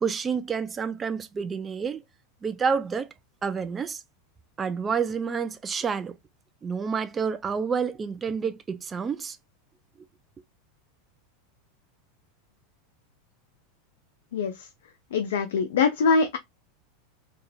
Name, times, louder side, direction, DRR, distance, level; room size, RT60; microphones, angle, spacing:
voice 1, 0.0-2.0 2.4-3.1 3.4-4.0 4.6-6.2 6.6-9.4, right 6 dB, 25° right, 0.4 m, -29 dB
voice 2, 14.3-14.7 15.1-16.4, left 5 dB, 75° left, 0.4 m, -23 dB
2.8 x 2.4 x 2.3 m
hypercardioid pair, 100°, 0 cm